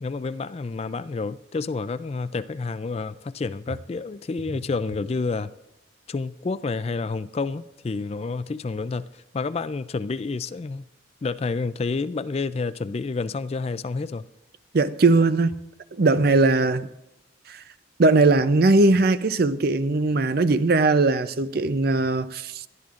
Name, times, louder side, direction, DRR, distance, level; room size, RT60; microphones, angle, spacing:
voice 1, 0.0-5.5 6.1-9.1 9.3-10.8 11.2-14.2, left 4 dB, 30° left, 0.3 m, -29 dB
voice 2, 14.7-15.6 15.9-16.9 17.5-17.6 18.0-22.6, right 3 dB, 50° right, 0.5 m, -20 dB
20.5 x 13.0 x 2.5 m
head